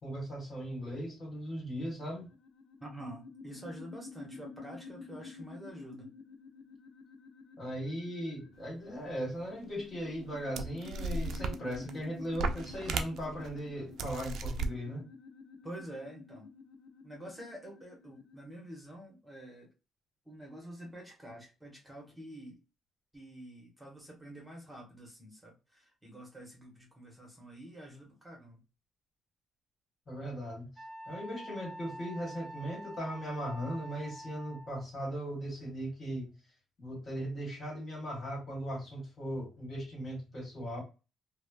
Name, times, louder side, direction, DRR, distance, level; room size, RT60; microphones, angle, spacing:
voice 1, 0.0-2.3 7.6-15.1 30.1-30.7 31.1-36.3 36.8-40.8, equal, 40° left, 1.4 m, -38 dB
sound 1, 2.0-18.4, left 4 dB, 70° left, 0.4 m, -50 dB
voice 2, 2.8-6.1 15.6-16.5 17.0-19.7 20.3-22.6 23.1-28.6, right 1 dB, 10° right, 1.1 m, -47 dB
sound 2, 9.4-9.5 10.2-10.3 10.5-12.0 12.3-13.5 14.0-14.7, right 3 dB, 70° right, 0.3 m, -35 dB
Wind instrument woodwind instrument, 30.8-34.8, right 1 dB, 35° right, 0.7 m, -47 dB
3.0 x 2.1 x 2.3 m
cardioid pair, 90°, 0 cm